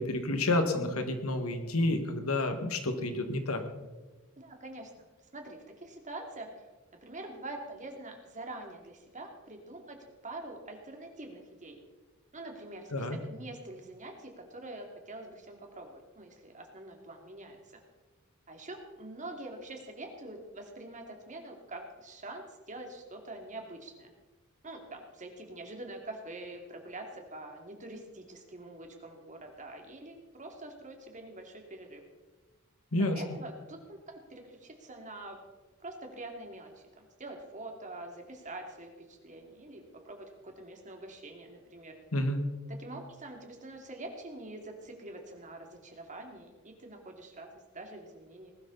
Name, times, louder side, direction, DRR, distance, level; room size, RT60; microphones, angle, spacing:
voice 1, 0.0-3.6 12.9-13.2 32.9-33.2 42.1-42.5, left 1 dB, 80° left, 7 dB, 1.8 m, -29 dB
voice 2, 4.4-5.1 5.3-6.5 7.0-10.0 10.2-11.8 12.3-17.8 18.5-24.1 24.6-32.0 33.0-35.4 35.8-42.0 42.7-48.5, right 2 dB, 35° right, 3 dB, 2.5 m, -45 dB
20.0 x 12.0 x 4.0 m, 1.2 s
head